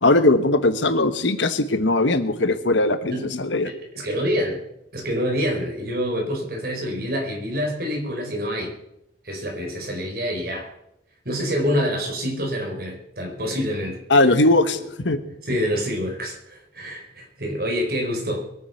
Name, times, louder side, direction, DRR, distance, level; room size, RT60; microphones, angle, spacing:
voice 1, 0.0-3.7 14.1-15.2, left 2 dB, 85° left, 10 dB, 1.3 m, -19 dB
voice 2, 3.6-4.6 4.9-8.7 9.2-10.7 11.2-14.0 15.5-18.4, equal, 55° right, 1 dB, 4.8 m, -26 dB
22.0 x 9.6 x 5.9 m, 0.81 s
head